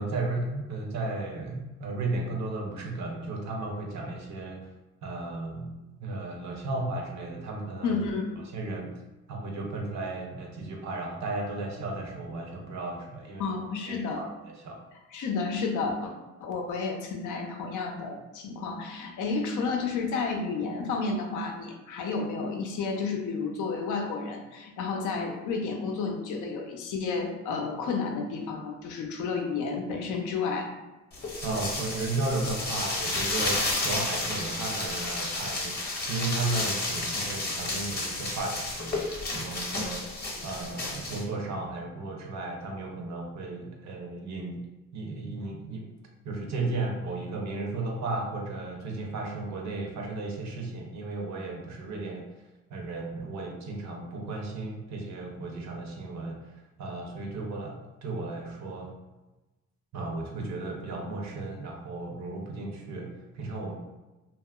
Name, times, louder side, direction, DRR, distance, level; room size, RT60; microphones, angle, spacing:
voice 1, 0.0-4.7 5.0-5.7 6.0-8.0 8.4-8.9 9.3-13.5 13.9-14.8 31.4-40.1 40.4-44.6 44.9-45.8 46.2-52.2 52.7-59.0 59.9-63.7, right 2 dB, 65° right, 1 dB, 0.7 m, -34 dB
voice 2, 7.8-8.4 13.4-14.2 15.1-16.1 16.4-30.7, left 4 dB, 80° left, 2 dB, 0.6 m, -31 dB
sound 1, 31.1-41.2, left 2 dB, 35° left, 0.8 m, -31 dB
2.8 x 2.3 x 2.3 m, 1.1 s
cardioid pair, 90°, 30 cm